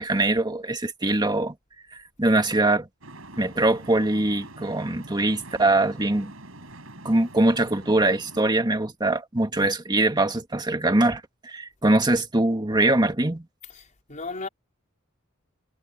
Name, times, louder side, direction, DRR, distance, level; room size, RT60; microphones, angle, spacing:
voice 1, 0.0-1.5 1.9-2.9 3.4-6.3 7.0-13.5, right 2 dB, 20° right, 2.0 m, -22 dB
sound 1, 3.0-8.5, right 2 dB, 80° right, 5.0 m, -44 dB
voice 2, 13.7-14.5, left 3 dB, 35° left, 4.4 m, -36 dB
head